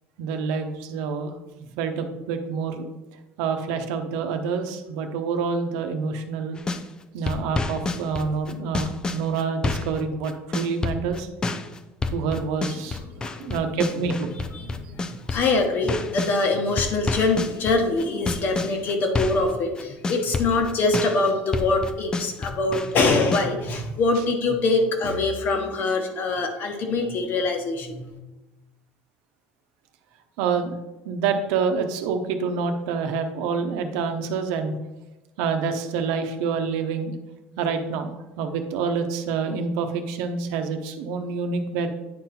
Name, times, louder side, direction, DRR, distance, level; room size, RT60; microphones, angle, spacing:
voice 1, 0.2-1.3 1.6-2.9 3.4-6.6 7.1-11.3 12.1-14.3 15.4-15.5 30.4-30.7 31.0-34.7 35.4-37.1 37.6-41.9, right 5 dB, 80° right, 6 dB, 0.9 m, -27 dB
sound 1, 6.6-6.8 7.3-16.4 16.8-19.5 19.8-23.5, left 3 dB, 15° left, 0.5 m, -28 dB
voice 2, 13.1-13.7 14.5-15.0 15.3-28.2, left 3 dB, 40° left, 4 dB, 1.2 m, -24 dB
9.6 x 3.9 x 4.3 m, 1.1 s
cardioid pair, 145°, 5 cm